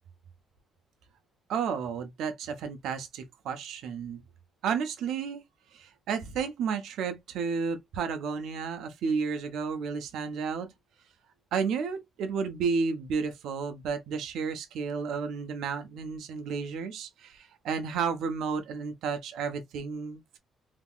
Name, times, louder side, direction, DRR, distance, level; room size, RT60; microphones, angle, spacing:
voice 1, 1.5-4.2 4.6-5.4 5.7-10.7 11.5-20.4, right 5 dB, 80° right, 0.6 m, -32 dB
3.5 x 2.8 x 2.3 m
cardioid pair, 155°, 0 cm